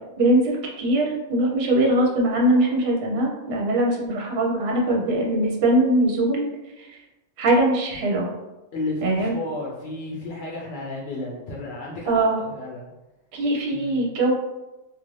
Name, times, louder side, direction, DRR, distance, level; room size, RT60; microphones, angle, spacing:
voice 1, 0.2-6.5 6.8-7.0 7.4-8.3 9.0-9.4 12.1-12.4 13.3-14.3, right 1 dB, 60° right, -1 dB, 0.8 m, -21 dB
voice 2, 8.7-12.9 13.7-14.1, left 2 dB, 65° left, -4 dB, 0.5 m, -33 dB
2.5 x 2.4 x 3.0 m, 1.0 s
omnidirectional pair, 1.3 m